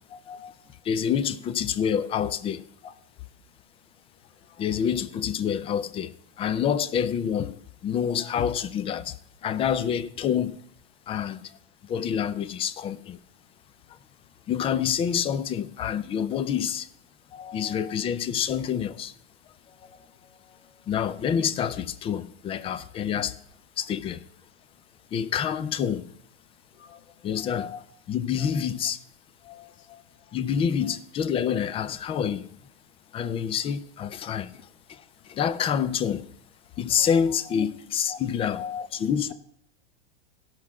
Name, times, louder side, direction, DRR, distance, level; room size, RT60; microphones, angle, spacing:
voice 1, 0.1-0.5 2.8-2.9 17.3-17.9 19.8-20.1 26.8-27.0 27.4-27.8 28.4-28.5 29.4-30.0 37.0-37.1 37.6-37.7 38.1-38.9, left 7 dB, 80° left, 1.0 m, -40 dB
voice 2, 0.8-2.6 4.6-7.6 7.8-9.2 9.4-10.6 11.1-11.4 11.8-13.2 14.5-16.9 17.5-19.1 20.9-23.3 23.8-24.3 25.1-26.1 27.2-27.7 28.1-29.0 30.3-32.5 33.1-34.5 34.9-36.3 36.8-38.6 38.9-39.3, left 8 dB, 20° left, 0.4 m, -27 dB
16.0 x 6.1 x 4.7 m
hypercardioid pair, 125°, 31 cm